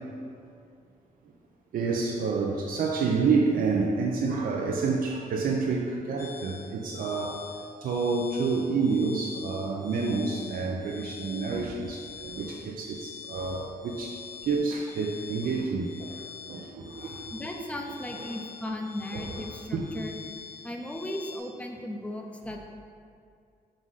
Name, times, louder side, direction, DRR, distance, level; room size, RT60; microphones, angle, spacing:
voice 1, 1.7-7.4 7.8-14.2 14.4-16.2 16.5-17.2 18.1-18.3 19.1-19.3 19.7-19.8, right 4 dB, 75° right, -1 dB, 0.6 m, -28 dB
sound 1, 6.2-21.4, left 8 dB, 60° left, 1.7 m, -45 dB
voice 2, 17.3-20.2 20.6-22.7, left 1 dB, 10° left, 1 dB, 0.6 m, -36 dB
6.2 x 3.9 x 5.6 m, 2.4 s
wide cardioid pair, 160°, 15 cm